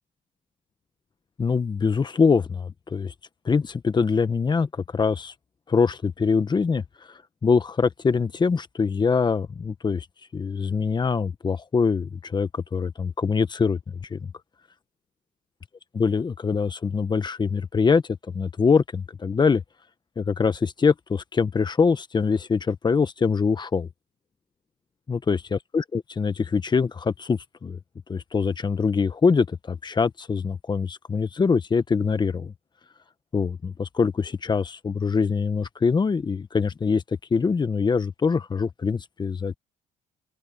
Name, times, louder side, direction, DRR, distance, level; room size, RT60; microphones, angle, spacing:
voice 1, 1.4-3.1 3.4-5.3 5.7-6.8 7.4-10.1 10.3-14.3 15.9-18.0 18.3-19.6 20.2-23.9 25.1-27.8 28.1-32.5 33.3-37.0 37.3-39.6, left 5 dB, 25° left, 1.2 m, -24 dB
open air
cardioid pair, 110°, 17 cm